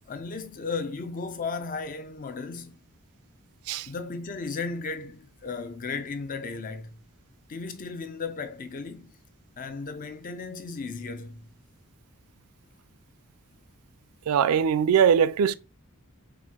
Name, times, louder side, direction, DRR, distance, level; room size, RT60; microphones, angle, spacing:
voice 1, 0.1-2.8 3.9-7.0 7.5-9.2 9.6-11.5, left 4 dB, 35° left, 0.4 m, -35 dB
voice 2, 14.3-15.5, right 7 dB, 75° right, 0.3 m, -21 dB
4.4 x 2.5 x 3.5 m
head